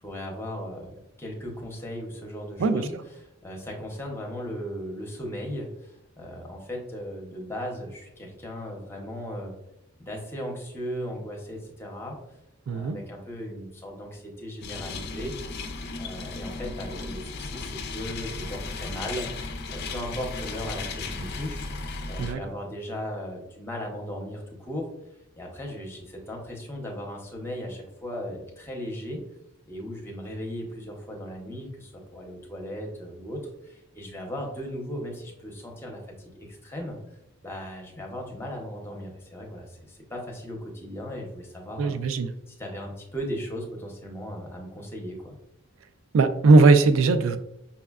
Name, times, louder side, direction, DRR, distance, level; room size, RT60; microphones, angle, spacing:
voice 1, 0.0-9.5 10.0-12.2 12.7-15.3 16.0-21.7 22.1-24.8 25.3-29.2 29.7-37.0 37.4-42.0 42.5-45.3, equal, 10° left, -1 dB, 0.6 m, -37 dB
voice 2, 12.7-13.0 22.2-22.4 41.8-42.3 46.1-47.4, right 3 dB, 75° right, 10 dB, 0.3 m, -19 dB
sound 1, 14.6-22.3, left 3 dB, 50° left, 0.3 m, -35 dB
5.6 x 2.1 x 2.3 m, 0.87 s
head